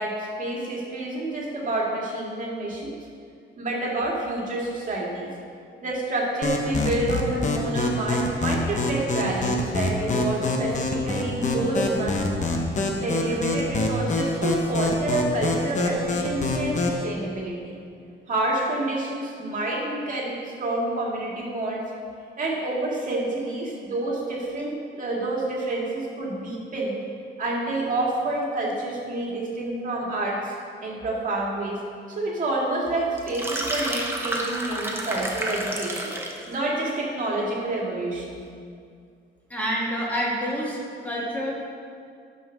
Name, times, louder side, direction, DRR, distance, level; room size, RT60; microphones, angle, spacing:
voice 1, 0.0-2.9 3.6-5.3 5.8-12.4 13.0-17.8 18.3-21.8 22.4-26.9 27.4-30.5 30.8-31.8 32.2-36.2 36.5-38.4, right 2 dB, 40° right, -3 dB, 2.2 m, -28 dB
sound 1, 6.4-17.0, left 2 dB, 35° left, 1.1 m, -26 dB
sound 2, 33.2-36.4, right 1 dB, 10° right, 1.1 m, -30 dB
voice 2, 39.5-41.5, equal, 10° left, -6 dB, 2.5 m, -28 dB
10.5 x 5.8 x 6.5 m, 2.3 s
cardioid pair, 150°, 20 cm